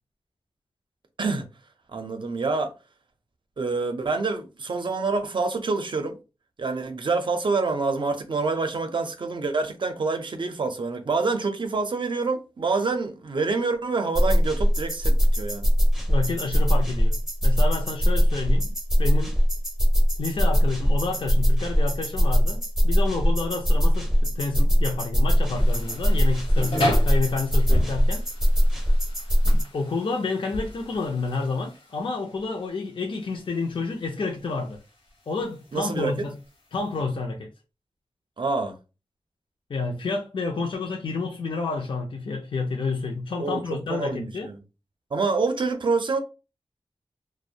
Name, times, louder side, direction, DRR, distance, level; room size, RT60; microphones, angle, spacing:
voice 1, 1.9-2.7 3.6-6.2 6.6-15.7 35.7-36.1 38.4-38.7 43.4-43.6 43.9-44.6 45.1-46.2, right 4 dB, 55° right, 0.5 m, -26 dB
sound 1, 14.2-29.6, equal, 5° right, 0.5 m, -21 dB
voice 2, 16.1-17.2 17.4-18.7 19.0-19.3 20.2-26.8 27.0-28.2 29.4-34.8 35.3-36.3 36.7-37.5 39.7-44.5, left 3 dB, 60° left, 0.4 m, -29 dB
sound 2, 25.5-37.0, left 1 dB, 75° left, 0.8 m, -35 dB
2.4 x 2.0 x 2.7 m
wide cardioid pair, 95°, 10 cm